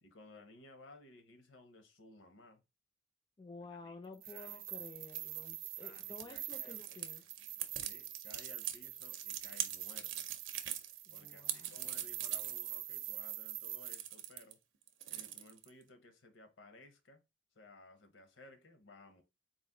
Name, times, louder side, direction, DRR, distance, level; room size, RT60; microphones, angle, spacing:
voice 1, 0.0-2.6 3.7-4.0 4.3-4.6 5.8-6.8 7.8-10.3 11.1-14.6 15.1-17.2 17.5-19.2, left 2 dB, 85° left, 0.9 m, -58 dB
voice 2, 3.4-7.3 11.1-11.8, left 3 dB, 25° left, 0.4 m, -52 dB
sound 1, 4.1-14.0, right 13 dB, 50° right, 0.3 m, -45 dB
sound 2, 5.1-14.5 14.8-15.8, right 11 dB, 85° right, 0.6 m, -42 dB
4.2 x 2.5 x 3.7 m
head